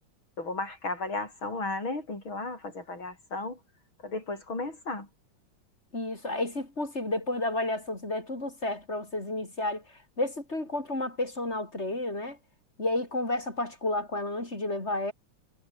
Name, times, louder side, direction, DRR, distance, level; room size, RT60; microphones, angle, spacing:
voice 1, 0.4-3.6 4.0-5.1, left 2 dB, 75° left, 7.3 m, -34 dB
voice 2, 5.9-9.8 10.2-12.4 12.8-15.1, left 2 dB, 30° left, 5.4 m, -31 dB
omnidirectional pair, 2.2 m